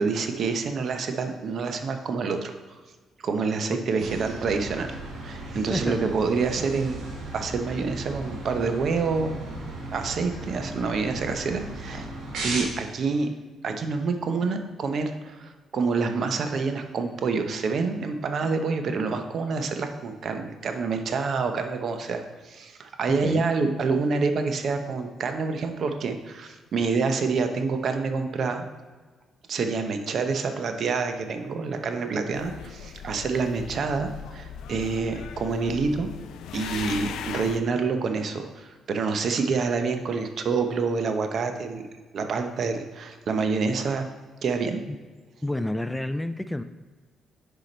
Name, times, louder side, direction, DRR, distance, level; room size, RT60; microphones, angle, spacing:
voice 1, 0.0-2.8 3.2-7.0 7.3-9.3 9.9-12.1 12.4-13.3 13.6-28.6 29.5-36.1 36.5-44.1 44.4-44.8, right 4 dB, 55° right, 6 dB, 0.7 m, -27 dB
voice 2, 3.7-4.1 5.7-6.1 23.1-23.5 44.9-45.0 45.4-46.6, left 1 dB, 10° left, 11 dB, 0.3 m, -30 dB
sound 1, 4.0-12.6, right 2 dB, 80° right, 1.9 m, -36 dB
sound 2, 32.3-37.6, left 8 dB, 85° left, 0.4 m, -38 dB
6.6 x 4.8 x 4.3 m, 1.3 s
cardioid pair, 90°, 0 cm